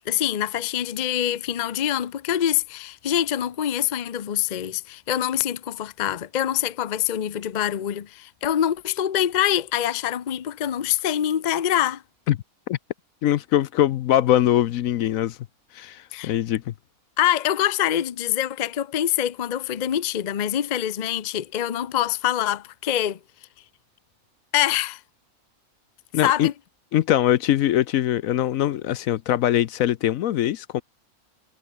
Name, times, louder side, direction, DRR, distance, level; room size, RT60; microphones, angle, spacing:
voice 1, 0.1-12.0 16.1-16.3 17.2-23.2 24.5-25.0 26.2-26.5, left 11 dB, 45° left, 0.6 m, -25 dB
voice 2, 13.2-15.4 15.7-16.7 26.1-26.5 26.9-30.8, left 12 dB, 70° left, 1.0 m, -22 dB
omnidirectional pair, 1.6 m